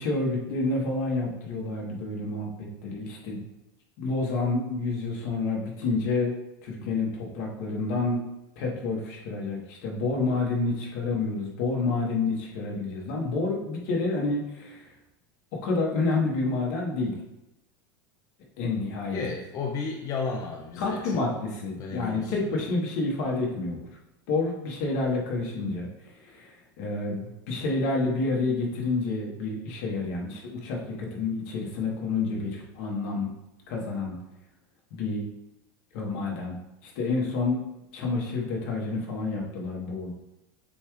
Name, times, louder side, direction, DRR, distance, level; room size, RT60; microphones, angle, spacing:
voice 1, 0.0-3.4 4.0-6.3 6.6-8.2 8.6-14.9 15.5-17.2 18.6-19.2 20.8-23.9 24.3-25.9 26.2-33.3 33.7-34.2 34.9-35.2 35.9-36.6 36.8-37.6 37.9-40.1, left 3 dB, 60° left, -1 dB, 1.3 m, -29 dB
voice 2, 19.1-21.2 21.8-22.6, left 4 dB, 30° left, 1 dB, 0.4 m, -33 dB
6.9 x 2.4 x 3.2 m, 0.92 s
supercardioid pair, 150°, 12 cm